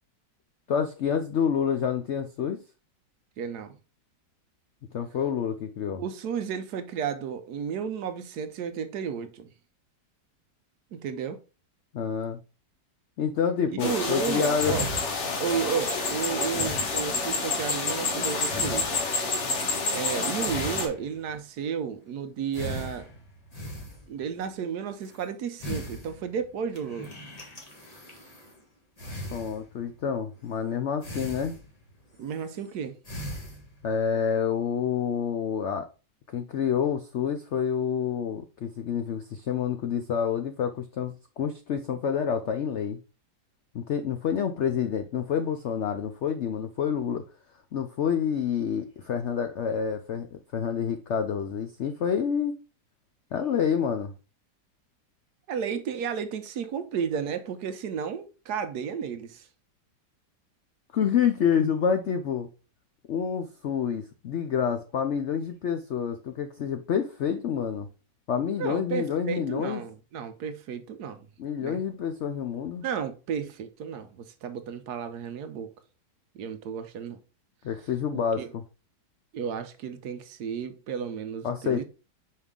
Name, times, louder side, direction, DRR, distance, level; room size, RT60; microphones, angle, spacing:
voice 1, 0.7-2.6 4.9-6.0 11.9-12.4 13.2-14.8 29.3-31.6 33.8-35.9 36.3-43.0 43.7-47.2 47.7-52.6 53.3-54.1 60.9-62.5 63.1-67.9 68.3-69.8 71.4-72.8 77.6-78.6 81.4-81.8, left 7 dB, 75° left, 0.6 m, -28 dB
voice 2, 3.4-3.8 6.0-9.5 10.9-11.4 13.7-14.9 15.4-19.0 19.9-23.1 24.1-27.1 32.2-33.0 55.5-59.5 68.6-71.2 71.6-71.8 72.8-75.7 76.3-77.2 78.1-78.5 79.3-81.8, right 7 dB, 70° right, 1.2 m, -33 dB
sound 1, 13.8-20.9, left 3 dB, 45° left, 1.3 m, -29 dB
sound 2, 14.6-17.4 18.5-19.4 20.4-21.3 22.5-24.2 25.0-25.2 25.6-26.5 26.8-28.6 29.0-29.9 30.4-30.7 31.0-31.9 32.2-32.7 33.0-33.9, equal, 25° left, 1.5 m, -39 dB
5.4 x 4.8 x 3.7 m
omnidirectional pair, 1.9 m